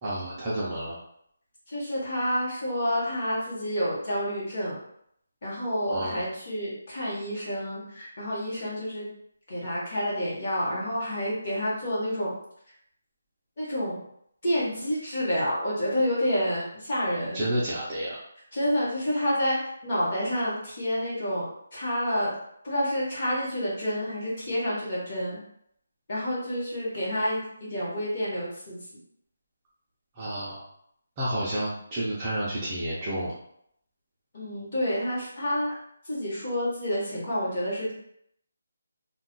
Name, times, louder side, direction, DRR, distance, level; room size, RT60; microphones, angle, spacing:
voice 1, 0.0-1.0 5.9-6.2 17.3-18.2 30.2-30.6 31.2-33.3, right 1 dB, 15° right, -8 dB, 0.4 m, -30 dB
voice 2, 1.7-4.8 5.4-9.1 9.5-12.3 13.6-14.0 14.4-17.4 18.5-19.6 19.8-22.3 22.6-25.4 26.1-28.8 34.3-35.8 36.0-37.9, equal, 30° left, -6 dB, 1.0 m, -29 dB
2.3 x 2.1 x 3.8 m, 0.71 s
hypercardioid pair, 180°, 0 cm